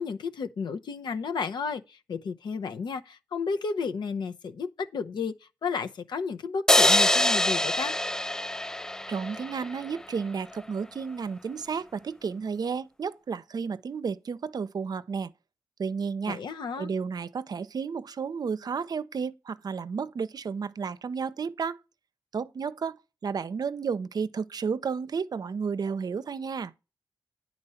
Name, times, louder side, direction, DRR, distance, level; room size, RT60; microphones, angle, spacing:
voice 1, 0.0-5.3 5.6-7.9 16.3-16.9, left 5 dB, 80° left, 0.8 m, -32 dB
sound 1, 6.7-10.0, left 1 dB, 10° left, 0.3 m, -24 dB
voice 2, 9.1-15.3 15.8-16.4 16.8-21.8 22.3-26.7, right 5 dB, 60° right, 0.6 m, -32 dB
9.7 x 4.3 x 5.6 m
cardioid pair, 60°, 7 cm